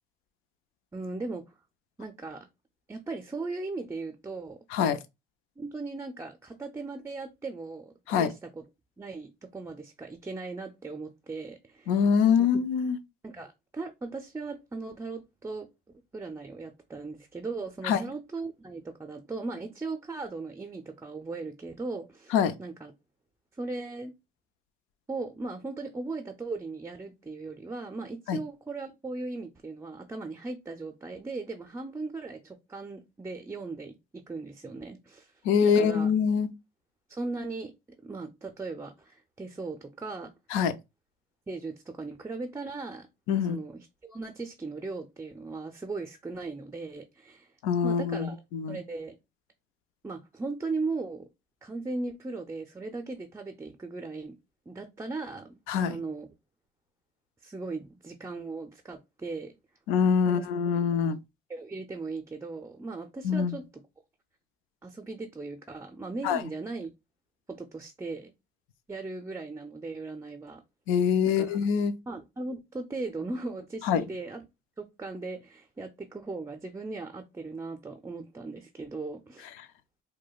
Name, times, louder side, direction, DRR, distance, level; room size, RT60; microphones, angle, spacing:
voice 1, 0.9-1.5 2.0-2.5 2.9-4.6 5.6-8.6 9.0-12.0 12.4-12.5 13.2-15.7 16.1-22.9 23.5-24.1 25.1-35.3 35.6-36.1 37.1-37.7 38.0-40.3 41.5-43.1 43.5-47.5 47.8-48.4 48.7-49.2 50.0-51.3 51.6-54.3 54.7-55.5 55.9-56.3 57.4-59.5 60.2-60.5 61.0-61.2 61.5-63.8 64.8-66.9 67.5-68.3 68.9-70.6 71.3-71.6 72.1-74.5 74.8-79.5, right 3 dB, 15° right, 0.4 m, -38 dB
voice 2, 11.9-13.0 17.8-18.0 22.3-22.5 28.3-28.4 35.5-36.5 40.5-40.7 43.3-43.6 47.6-48.8 55.7-56.0 59.9-61.2 63.2-63.5 66.2-66.4 70.9-71.9 73.8-74.0, left 7 dB, 80° left, 0.4 m, -24 dB
4.7 x 2.1 x 2.3 m
supercardioid pair, 75°, 21 cm